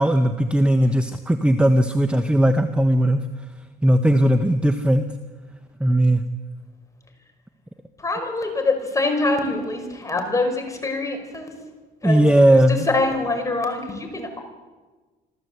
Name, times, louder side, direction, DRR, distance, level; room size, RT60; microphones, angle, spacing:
voice 1, 0.0-3.2 3.8-5.0 5.8-6.2 12.0-12.9, right 1 dB, 5° right, 8 dB, 1.1 m, -18 dB
voice 2, 8.0-11.5 12.0-14.4, left 2 dB, 20° left, 4 dB, 5.3 m, -25 dB
26.5 x 14.5 x 8.1 m, 1.3 s
cardioid pair, 110°, 17 cm